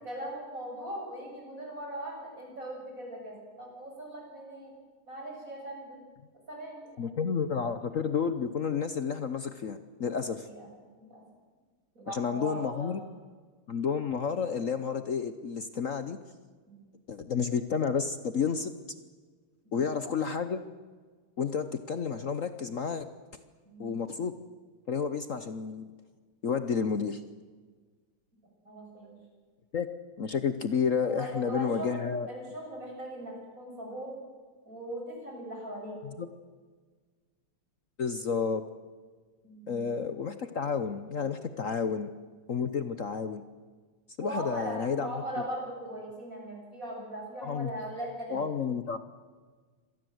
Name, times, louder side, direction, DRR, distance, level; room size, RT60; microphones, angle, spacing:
voice 1, 0.0-4.7 5.1-6.0 6.5-7.1 10.4-10.7 11.0-11.2 11.9-13.1 16.7-16.9 19.6-19.9 23.6-24.1 28.6-29.2 31.1-31.9 32.3-34.1 34.6-36.0 39.4-39.9 44.2-48.4, right 1 dB, 35° right, 0 dB, 7.6 m, -39 dB
voice 2, 7.0-10.5 12.1-13.0 13.7-16.2 17.1-18.7 19.7-20.6 21.4-23.1 23.8-24.3 24.9-25.9 26.4-27.2 29.7-29.9 30.2-32.3 36.0-36.3 38.0-38.6 39.7-42.1 42.5-43.4 44.2-45.1 47.4-47.7 48.3-49.0, left 6 dB, 55° left, 10 dB, 0.9 m, -31 dB
26.0 x 18.5 x 7.9 m, 1.5 s
omnidirectional pair, 2.4 m